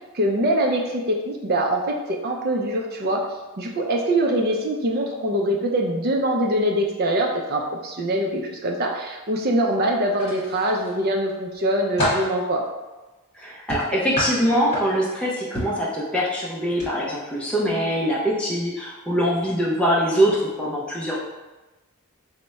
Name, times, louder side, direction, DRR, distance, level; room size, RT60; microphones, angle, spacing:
voice 1, 0.1-3.3 3.6-12.6, right 1 dB, 45° right, 1 dB, 0.5 m, -23 dB
sound 1, 10.1-10.9 11.4-12.3 13.7-15.1 15.5-15.8 16.7-16.9 17.3-17.4, left 1 dB, 30° left, 1.2 m, -28 dB
voice 2, 13.3-21.2, equal, 5° left, -6 dB, 0.5 m, -23 dB
3.4 x 2.1 x 4.0 m, 1.1 s
head